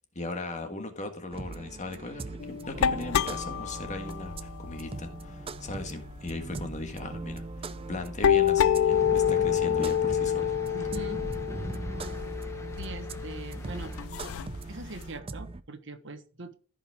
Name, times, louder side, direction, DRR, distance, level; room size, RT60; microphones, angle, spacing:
voice 1, 0.1-10.5, left 2 dB, 35° left, 1.6 m, -38 dB
sound 1, 1.3-15.6, right 3 dB, 25° right, 0.5 m, -41 dB
sound 2, 2.4-6.4 6.8-7.0 7.3-15.2, left 9 dB, 90° left, 0.4 m, -28 dB
sound 3, 8.9-14.1, equal, 15° left, 1.3 m, -40 dB
voice 2, 10.7-11.2 12.8-13.9 14.7-16.5, right 2 dB, 60° right, 1.2 m, -42 dB
15.0 x 5.3 x 3.5 m
head